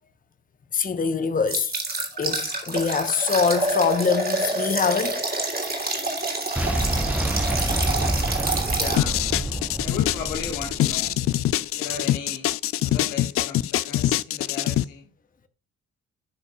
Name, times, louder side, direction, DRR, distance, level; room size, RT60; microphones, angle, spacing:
voice 1, 0.7-1.7 2.1-5.1, left 5 dB, 20° left, 1.0 m, -24 dB
sound 1, 1.5-9.0, right 2 dB, 20° right, 2.9 m, -27 dB
Boom, 6.6-11.5, right 1 dB, 5° right, 0.9 m, -28 dB
voice 2, 8.7-9.2 9.8-11.2 11.8-12.5 12.8-15.1, left 6 dB, 70° left, 1.7 m, -35 dB
sound 2, 9.0-14.8, left 14 dB, 35° left, 0.4 m, -24 dB
16.0 x 6.4 x 2.4 m
figure-of-eight pair, 40°, 41 cm